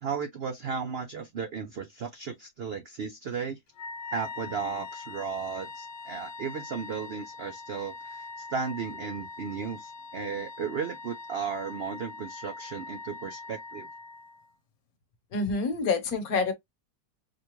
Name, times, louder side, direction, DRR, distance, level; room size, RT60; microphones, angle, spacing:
voice 1, 0.0-3.6 4.1-13.9, right 6 dB, 85° right, 0.5 m, -35 dB
Wind instrument woodwind instrument, 3.7-14.5, left 4 dB, 80° left, 1.5 m, -42 dB
voice 2, 15.3-16.5, left 4 dB, 60° left, 1.4 m, -27 dB
5.0 x 2.2 x 3.0 m
omnidirectional pair, 1.8 m